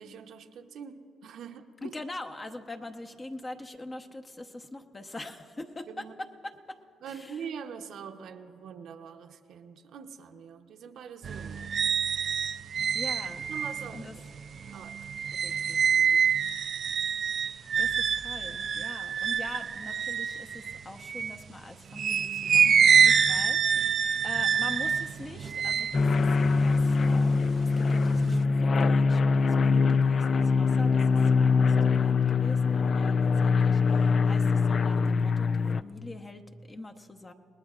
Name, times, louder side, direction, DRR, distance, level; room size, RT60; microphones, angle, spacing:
voice 1, 0.0-1.9 5.9-6.3 7.0-11.8 12.2-12.6 13.5-14.2 14.7-15.0 15.3-16.5 23.7-24.2, right 7 dB, 75° right, 5 dB, 0.9 m, -44 dB
voice 2, 1.8-6.8 7.1-7.4 12.9-13.5 13.9-14.1 17.8-37.3, left 2 dB, 25° left, 6 dB, 1.0 m, -43 dB
sound 1, 11.2-21.4 21.9-27.4 27.8-28.4, right 7 dB, 55° right, 0.5 m, -26 dB
sound 2, 25.9-35.8, left 4 dB, 45° left, 0.3 m, -23 dB
29.0 x 19.5 x 2.5 m, 2.5 s
cardioid pair, 90°, 0 cm